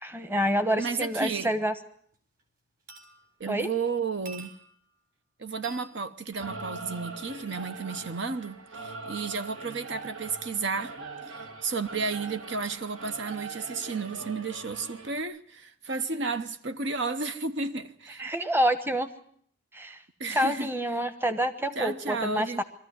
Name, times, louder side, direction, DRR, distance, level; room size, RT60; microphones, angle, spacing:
voice 1, 0.0-1.7 3.5-3.7 18.2-19.1 19.7-20.0 20.3-22.6, equal, 10° right, 1.1 m, -27 dB
voice 2, 0.8-1.6 3.4-4.5 5.4-11.0 11.3-18.3 20.2-20.7 21.8-22.6, right 4 dB, 60° right, 0.8 m, -32 dB
sound 1, 2.1-2.4 2.9-3.6 4.2-5.0 5.6-6.0 7.3-7.5 8.5-8.6, right 5 dB, 40° right, 4.1 m, -48 dB
Singing / Musical instrument, 6.3-15.2, right 3 dB, 80° right, 1.9 m, -42 dB
22.5 x 14.0 x 9.2 m
head